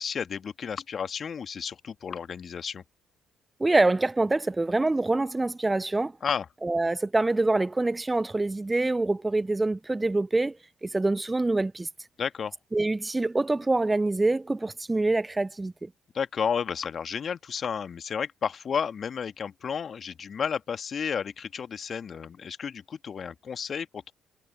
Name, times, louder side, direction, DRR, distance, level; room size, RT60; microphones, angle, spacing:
voice 1, 0.0-2.8 6.2-6.5 12.2-12.5 16.1-24.1, left 7 dB, 50° left, 1.8 m, -32 dB
voice 2, 3.6-6.1 6.6-10.6 10.8-11.9 12.7-15.9, right 2 dB, 20° right, 0.3 m, -25 dB
hypercardioid pair, 45°, 0 cm